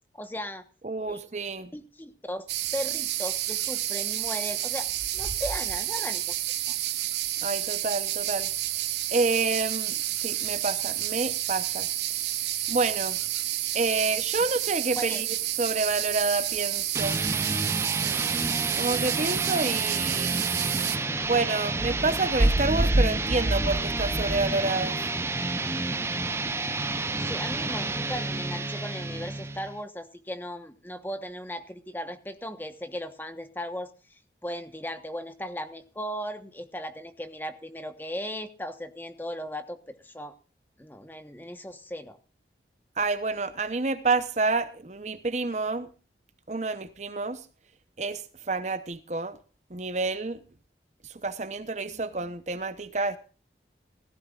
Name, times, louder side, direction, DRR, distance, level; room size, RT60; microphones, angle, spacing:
voice 1, 0.1-0.6 1.1-1.2 1.7-2.5 2.7-6.3 6.7-6.8 15.0-15.2 27.2-40.3 40.8-42.2, equal, 10° left, 1.1 m, -37 dB
voice 2, 0.8-1.7 7.4-8.5 9.1-9.9 10.2-11.9 12.7-13.2 13.7-15.3 15.6-17.2 18.8-20.3 21.2-25.0 43.0-45.9 46.5-47.4 48.0-48.2 48.5-49.4 49.7-50.4 51.2-53.2, right 3 dB, 40° right, 0.8 m, -27 dB
sound 1, 2.5-21.0, right 13 dB, 80° right, 1.1 m, -30 dB
sound 2, 16.9-29.8, right 3 dB, 15° right, 0.6 m, -30 dB
17.0 x 15.0 x 2.4 m
head